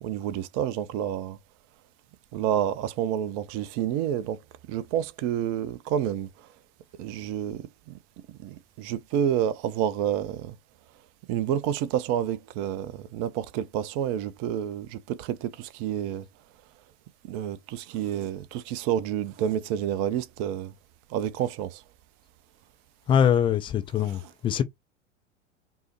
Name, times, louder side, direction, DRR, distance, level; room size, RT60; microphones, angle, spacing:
voice 1, 0.0-1.4 2.3-4.4 4.7-6.3 7.0-7.9 8.4-10.6 11.3-16.2 17.3-20.7 21.1-21.8, right 10 dB, 40° right, 0.6 m, -29 dB
voice 2, 23.1-24.6, left 8 dB, 15° left, 0.3 m, -23 dB
5.4 x 2.0 x 3.0 m
figure-of-eight pair, 90°, 36 cm